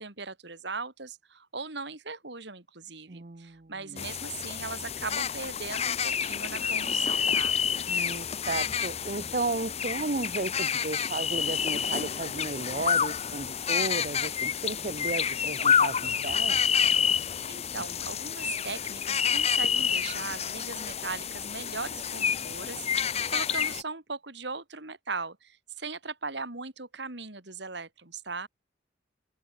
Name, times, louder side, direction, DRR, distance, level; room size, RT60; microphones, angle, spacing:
voice 1, 0.0-7.5 17.5-28.5, right 4 dB, 60° right, 2.7 m, -39 dB
voice 2, 3.1-4.0 7.9-16.6, right 3 dB, 40° right, 0.9 m, -34 dB
sound 1, 4.0-23.8, left 7 dB, 35° left, 0.8 m, -29 dB
head